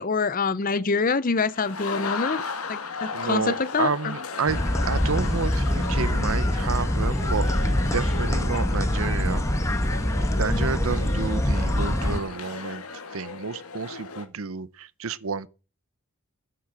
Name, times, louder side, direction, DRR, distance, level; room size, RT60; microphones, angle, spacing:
voice 1, 0.0-2.4 2.7-4.1 10.5-10.7, left 4 dB, 40° left, 0.7 m, -26 dB
sound 1, 1.5-14.3, left 4 dB, 90° left, 2.0 m, -36 dB
voice 2, 3.1-4.6 4.8-9.4 10.4-12.8 13.1-15.5, right 5 dB, 75° right, 0.7 m, -30 dB
sound 2, 4.5-12.2, left 1 dB, 15° left, 1.2 m, -24 dB
10.5 x 8.5 x 7.6 m
head